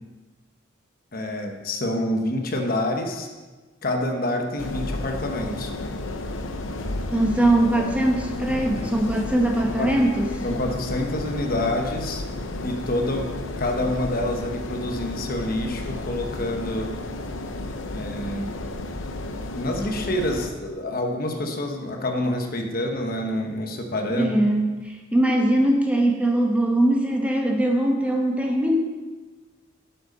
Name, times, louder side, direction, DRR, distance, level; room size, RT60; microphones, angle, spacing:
voice 1, 1.1-3.3 3.8-5.7 7.7-7.9 9.8-9.9 10.4-12.2 12.6-16.9 17.9-18.5 19.5-24.3, left 1 dB, 50° left, 3 dB, 1.1 m, -27 dB
sound 1, 4.6-20.5, left 2 dB, 85° left, 0.8 m, -32 dB
voice 2, 7.1-10.3 24.1-28.8, right 1 dB, 5° right, 1 dB, 1.0 m, -21 dB
8.1 x 7.9 x 5.2 m, 1.3 s
head